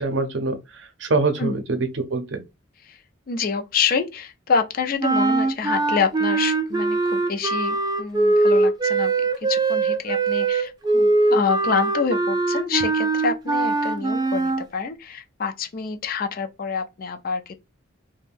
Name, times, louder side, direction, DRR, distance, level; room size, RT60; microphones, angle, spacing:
voice 1, 0.0-2.4, right 3 dB, 65° right, 0.6 m, -25 dB
voice 2, 3.3-17.6, left 5 dB, 45° left, 0.4 m, -27 dB
sound 1, 5.0-14.6, right 3 dB, 20° right, 0.3 m, -21 dB
2.5 x 2.1 x 3.3 m
head